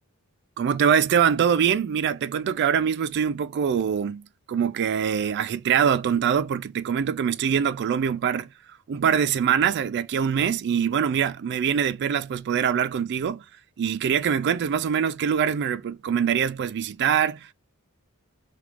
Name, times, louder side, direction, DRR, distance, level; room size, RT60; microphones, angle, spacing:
voice 1, 0.6-8.5 8.9-13.4 13.8-17.5, right 7 dB, 50° right, 0.3 m, -23 dB
3.5 x 2.4 x 2.8 m
head